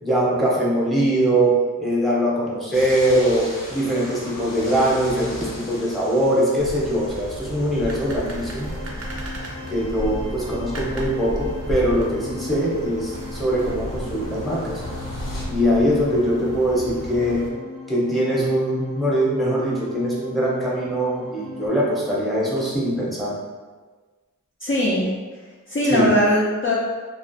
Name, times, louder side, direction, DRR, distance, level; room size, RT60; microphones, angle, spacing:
voice 1, 0.0-8.7 9.7-14.8 15.5-17.4 17.9-23.3 25.9-26.1, right 1 dB, ahead, -6 dB, 0.7 m, -22 dB
sound 1, 2.7-15.4, left 2 dB, 80° left, 0.6 m, -40 dB
sound 2, 6.6-17.5, right 1 dB, 50° right, 0.5 m, -33 dB
sound 3, 8.1-21.7, left 2 dB, 85° right, 0.7 m, -39 dB
voice 2, 24.6-25.1 25.7-26.7, equal, 40° left, -5 dB, 0.4 m, -20 dB
2.4 x 2.0 x 2.6 m, 1.3 s
wide cardioid pair, 55°, 33 cm